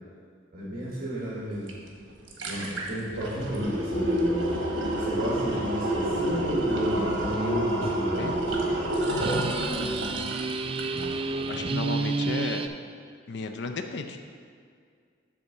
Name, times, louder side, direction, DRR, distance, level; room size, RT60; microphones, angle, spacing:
voice 1, 0.5-1.7 2.4-4.5 5.0-8.9, equal, 50° right, -7 dB, 1.5 m, -33 dB
sound 1, 1.7-1.8 2.1-11.2 11.5-11.6, right 1 dB, 70° right, 1.3 m, -28 dB
sound 2, 7.3-7.5 7.8-8.0 9.2-12.7, right 3 dB, 30° right, 0.3 m, -30 dB
voice 2, 9.8-10.3 11.5-12.7 13.3-14.2, left 4 dB, 65° left, 6 dB, 0.5 m, -34 dB
8.0 x 3.6 x 6.6 m, 2.1 s
head